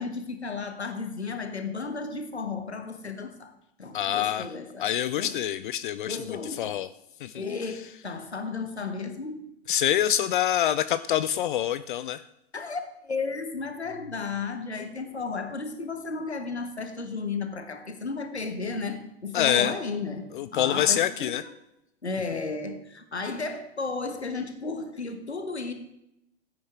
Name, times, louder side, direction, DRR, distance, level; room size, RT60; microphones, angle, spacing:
voice 1, 0.0-3.5 3.8-4.9 5.2-5.4 6.1-6.8 7.3-9.5 12.5-21.5 22.0-25.7, left 4 dB, 85° left, 7 dB, 1.4 m, -34 dB
voice 2, 3.9-4.5 4.8-6.9 7.2-7.4 9.7-12.2 19.3-19.7 20.3-21.4, left 11 dB, 50° left, 14 dB, 0.5 m, -26 dB
15.5 x 9.3 x 3.6 m, 0.82 s
figure-of-eight pair, 95°, 32 cm